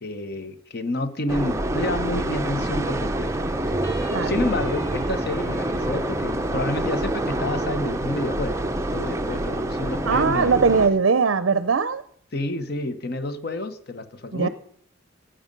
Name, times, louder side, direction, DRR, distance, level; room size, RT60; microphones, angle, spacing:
voice 1, 0.0-3.4 3.8-8.6 8.9-10.6 12.3-14.5, left 2 dB, 50° left, 0.9 m, -29 dB
sound 1, 1.3-10.9, right 1 dB, 15° right, 0.5 m, -26 dB
sound 2, 3.8-7.4, right 1 dB, 15° left, 3.3 m, -48 dB
voice 2, 10.1-12.0 14.3-14.5, right 5 dB, 60° right, 0.5 m, -20 dB
12.5 x 8.8 x 5.3 m
head